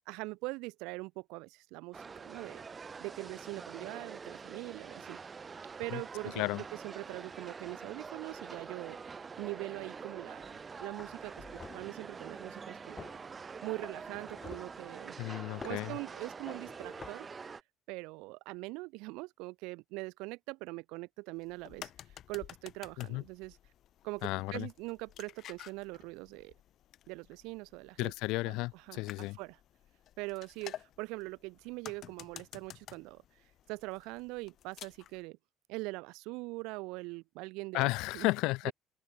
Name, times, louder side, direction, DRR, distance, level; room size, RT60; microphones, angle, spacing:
voice 1, 0.1-2.6 3.0-5.2 5.8-6.4 6.7-11.5 11.7-13.1 13.6-15.1 15.6-17.3 17.9-23.6 24.0-26.5 27.1-28.1 28.5-29.6 30.2-35.4 35.7-38.3, right 25 dB, 85° right, 2.3 m, -42 dB
sound 1, 1.9-17.6, right 5 dB, 20° right, 1.9 m, -46 dB
sound 2, 10.4-10.6 11.0-12.0 13.0-13.2 13.8-14.8 15.6-15.9 16.5-17.1, left 5 dB, 20° left, 5.0 m, -49 dB
voice 2, 15.2-16.0 23.0-23.2 24.2-24.7 28.0-29.4 37.7-38.7, left 21 dB, 75° left, 0.8 m, -33 dB
sound 3, 21.4-35.2, left 11 dB, 45° left, 5.7 m, -52 dB
open air
cardioid pair, 155°, 0 cm